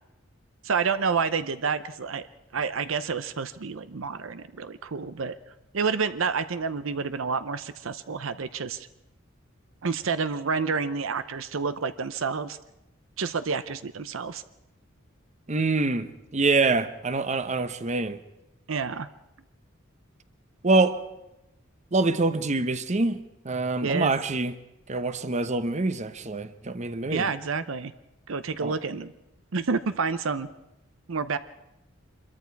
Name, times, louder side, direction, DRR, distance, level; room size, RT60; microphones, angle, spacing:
voice 1, 0.6-2.2 2.5-5.4 5.7-8.9 9.8-12.6 13.2-14.4 18.7-19.1 23.8-24.1 27.1-27.9 28.3-29.1 29.5-30.5 31.1-31.4, right 5 dB, 70° right, 0.7 m, -29 dB
voice 2, 15.5-16.1 16.3-18.2 20.6-21.0 21.9-23.2 23.4-24.5 24.9-27.3 28.6-28.7, right 3 dB, 35° right, 0.9 m, -25 dB
25.5 x 22.5 x 4.7 m
head